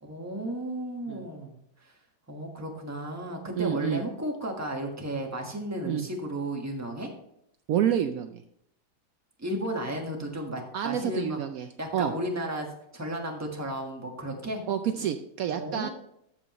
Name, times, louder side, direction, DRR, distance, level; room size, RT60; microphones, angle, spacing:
voice 1, 0.0-1.5 2.3-7.1 9.4-11.4 11.8-14.6 15.5-15.9, right 1 dB, 10° right, 2 dB, 1.1 m, -34 dB
voice 2, 3.5-4.0 5.8-6.1 7.7-8.4 10.7-12.1 14.7-15.9, right 9 dB, 85° right, 7 dB, 0.7 m, -28 dB
13.5 x 5.5 x 3.1 m, 0.74 s
omnidirectional pair, 2.1 m